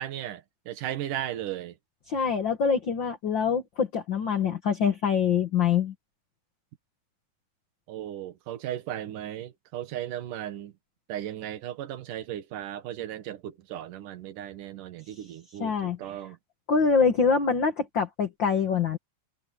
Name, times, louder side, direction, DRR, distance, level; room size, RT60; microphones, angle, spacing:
voice 1, 0.0-1.8 7.9-10.7 11.1-16.4, right 11 dB, 60° right, 2.9 m, -36 dB
voice 2, 2.1-5.9 15.6-16.1 16.7-19.0, left 6 dB, 50° left, 1.5 m, -25 dB
omnidirectional pair, 4.4 m